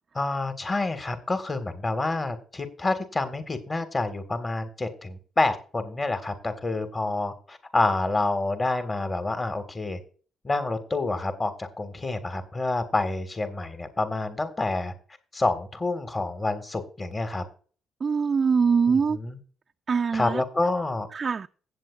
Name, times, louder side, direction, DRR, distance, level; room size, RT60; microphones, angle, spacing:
voice 1, 0.1-10.0 10.4-14.9 15.3-17.4 18.9-19.4 20.1-21.1, left 2 dB, 25° left, 1.6 m, -28 dB
voice 2, 18.0-19.2 19.9-20.4 21.1-21.5, right 5 dB, 40° right, 0.4 m, -23 dB
16.5 x 7.8 x 2.4 m
cardioid pair, 90°, 0 cm